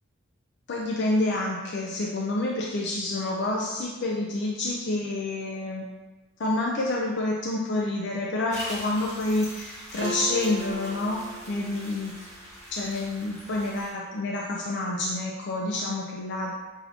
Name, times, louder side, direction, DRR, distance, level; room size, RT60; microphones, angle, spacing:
voice 1, 0.7-5.8 6.4-12.1 12.7-16.5, left 2 dB, 55° left, -2 dB, 0.4 m, -28 dB
sound 1, 8.5-13.9, equal, 15° left, 1.1 m, -42 dB
sound 2, 10.0-12.2, right 2 dB, 75° right, 1.1 m, -37 dB
6.1 x 2.7 x 2.7 m, 1.2 s
head